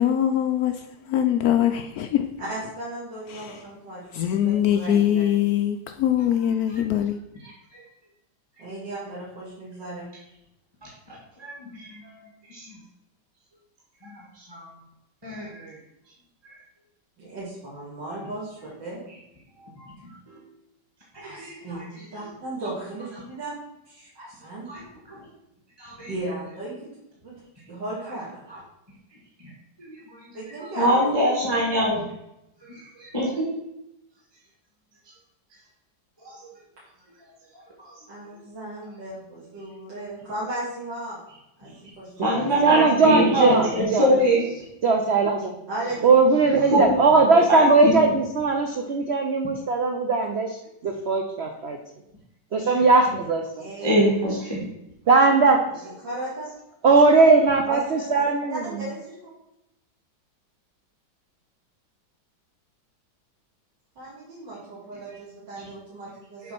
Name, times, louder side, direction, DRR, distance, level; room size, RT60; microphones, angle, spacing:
voice 1, 0.0-2.3 3.3-3.6 4.1-7.2, left 10 dB, 80° left, 0.8 m, -23 dB
voice 2, 2.4-4.1 4.4-5.3 8.6-10.1 17.2-19.0 21.2-21.8 22.1-23.6 23.9-24.7 26.1-26.7 27.2-27.3 27.7-28.4 30.3-31.0 38.1-41.2 41.6-41.7 42.0-42.3 42.6-42.8 45.7-46.2 53.6-53.9 55.8-56.5 57.6-58.2 58.5-59.2 64.0-66.5, right 1 dB, 65° right, 2.7 m, -35 dB
voice 3, 7.4-7.8 11.1-12.2 12.5-12.7 14.0-14.7 15.2-15.7 16.4-16.5 18.1-18.3 19.7-20.4 21.1-21.8 24.7-24.8 25.1-25.2 25.8-26.1 28.5-28.6 29.8-30.2 30.8-32.1 32.6-33.4 36.2-36.3 42.2-44.6 46.7-47.9 53.8-54.7 66.4-66.5, equal, 15° right, 1.5 m, -25 dB
voice 4, 42.6-44.1 44.8-45.5 46.0-50.6 50.8-51.8 52.5-53.4 55.1-55.6 56.8-58.6, right 3 dB, 90° right, 0.5 m, -19 dB
7.5 x 3.8 x 5.9 m
omnidirectional pair, 2.1 m